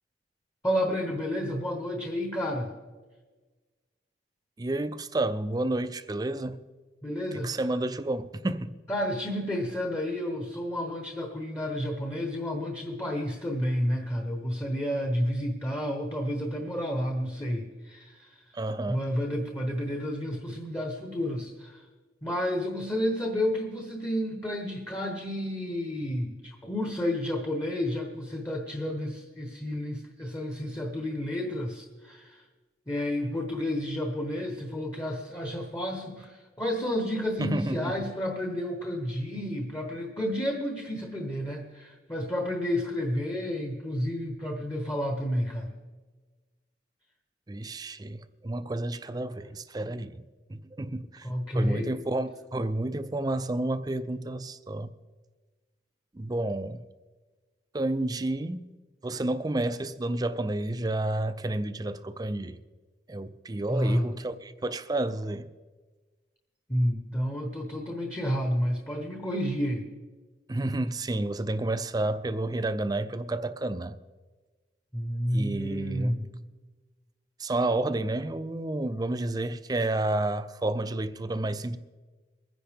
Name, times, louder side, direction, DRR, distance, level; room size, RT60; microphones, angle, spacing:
voice 1, 0.6-2.7 7.0-7.5 8.9-18.5 18.9-21.9 22.2-32.4 32.9-45.7 51.2-51.9 63.7-64.1 66.7-69.9 74.9-76.3, equal, 15° left, 1.0 m, -31 dB
voice 2, 4.6-6.6 7.3-8.7 18.5-19.0 37.4-38.0 47.5-51.3 51.5-54.9 56.1-56.8 57.7-58.7 59.0-62.6 63.1-65.5 70.5-74.0 75.3-76.2 77.4-81.8, right 2 dB, 20° right, 0.4 m, -30 dB
23.0 x 10.0 x 3.5 m
head